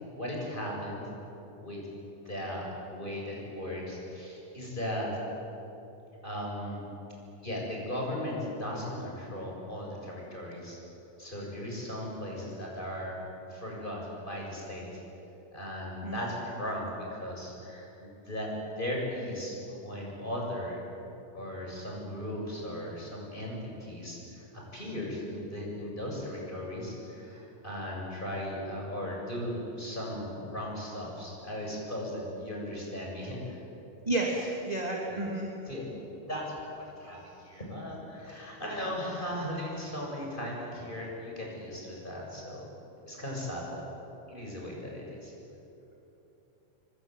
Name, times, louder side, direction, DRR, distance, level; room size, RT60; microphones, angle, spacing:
voice 1, 0.1-1.0 1.6-1.8 2.2-5.1 6.2-6.8 7.4-10.8 11.2-13.2 13.5-14.9 15.5-19.6 19.8-20.8 21.3-33.6 35.1-35.2 35.7-36.0 36.3-42.7 43.0-43.8 44.3-45.3, left 1 dB, 10° left, -2 dB, 7.4 m, -37 dB
voice 2, 34.1-35.5, right 2 dB, 10° right, -2 dB, 2.5 m, -31 dB
25.5 x 24.5 x 9.3 m, 3.0 s
omnidirectional pair, 4.1 m